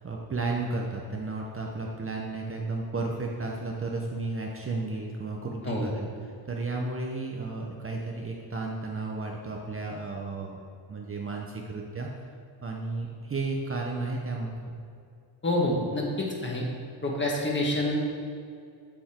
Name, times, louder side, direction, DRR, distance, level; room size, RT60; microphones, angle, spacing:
voice 1, 0.0-10.6 10.9-12.1 12.6-14.7, right 3 dB, 30° right, 0 dB, 0.8 m, -33 dB
voice 2, 15.4-16.6 17.0-18.0, left 1 dB, 25° left, -2 dB, 1.5 m, -27 dB
7.4 x 7.2 x 4.4 m, 2.4 s
cardioid pair, 125°, 47 cm